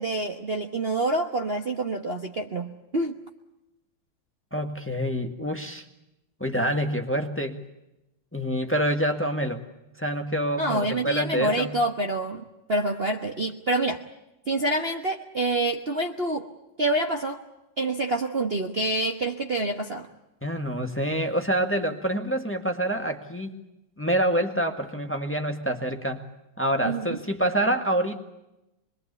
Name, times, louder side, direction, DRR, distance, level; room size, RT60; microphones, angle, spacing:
voice 1, 0.0-3.2 10.6-14.0 14.5-16.5 16.8-17.4 17.8-20.1 26.8-27.2, right 2 dB, 35° right, 4 dB, 1.3 m, -27 dB
voice 2, 4.5-5.9 6.4-7.6 8.3-9.6 10.0-11.7 20.4-23.6 24.0-26.2 26.6-28.2, right 1 dB, 5° left, 5 dB, 1.8 m, -26 dB
25.5 x 22.5 x 8.3 m, 0.90 s
omnidirectional pair, 2.1 m